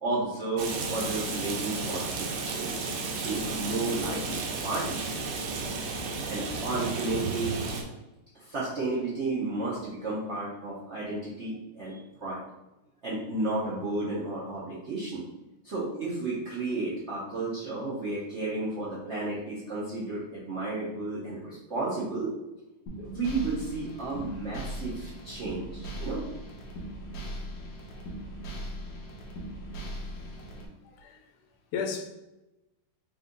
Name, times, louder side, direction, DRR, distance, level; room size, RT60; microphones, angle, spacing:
voice 1, 0.0-5.3 6.3-7.5 8.3-12.4 13.0-15.2 15.6-22.3 23.0-26.2, right 2 dB, 65° right, -7 dB, 0.7 m, -33 dB
Rain, 0.6-7.8, right 3 dB, 80° right, 1.5 m, -33 dB
sound 1, 22.9-30.7, equal, 65° left, 1.1 m, -39 dB
voice 2, 29.7-31.3 31.7-32.1, left 5 dB, 85° left, 4 dB, 1.5 m, -37 dB
4.0 x 2.6 x 3.8 m, 0.98 s
omnidirectional pair, 2.3 m